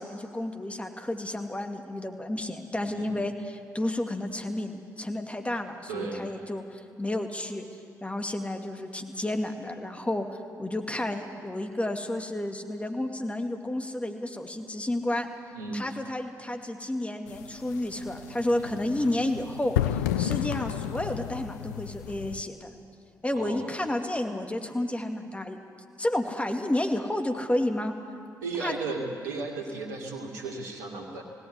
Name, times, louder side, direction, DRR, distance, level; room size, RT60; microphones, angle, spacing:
voice 1, 0.0-7.7 8.0-15.3 15.7-19.8 20.2-22.7 23.2-25.6 26.0-27.9 28.6-28.8, left 1 dB, 15° left, 4 dB, 2.4 m, -31 dB
voice 2, 5.9-6.3 15.5-15.8 18.6-18.8 23.3-23.7 28.4-31.2, right 3 dB, 80° right, 1 dB, 2.4 m, -35 dB
sound 1, 17.3-22.4, left 12 dB, 85° left, 0.5 m, -32 dB
18.5 x 17.5 x 9.8 m, 2.3 s
hypercardioid pair, 40°, 9 cm